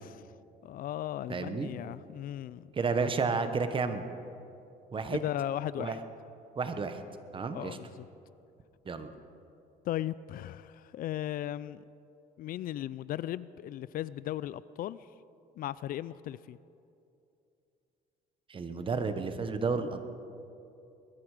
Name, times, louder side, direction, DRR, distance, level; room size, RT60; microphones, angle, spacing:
voice 1, 0.6-2.7 5.1-6.0 7.5-8.1 9.9-11.8 12.4-15.0 15.6-16.6, left 12 dB, 60° left, 18 dB, 0.4 m, -36 dB
voice 2, 1.3-1.7 2.8-4.0 4.9-5.2 5.8-6.0 6.6-7.0 7.3-7.8 8.8-9.1 18.5-20.1, right 4 dB, 30° right, 8 dB, 1.2 m, -31 dB
21.5 x 12.5 x 4.9 m, 2.7 s
cardioid pair, 110°, 17 cm